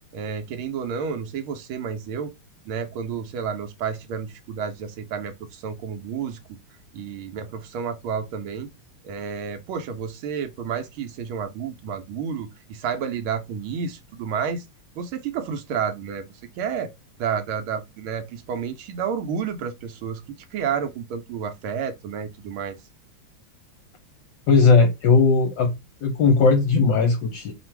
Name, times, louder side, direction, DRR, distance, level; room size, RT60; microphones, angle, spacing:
voice 1, 0.1-2.3 2.6-6.4 6.9-8.7 9.0-14.6 15.0-16.2 16.6-16.9 17.2-20.2 20.5-22.8, right 7 dB, 80° right, 1.5 m, -30 dB
voice 2, 24.5-25.7 26.0-27.5, left 4 dB, 70° left, 1.2 m, -17 dB
3.4 x 2.4 x 4.4 m
omnidirectional pair, 2.3 m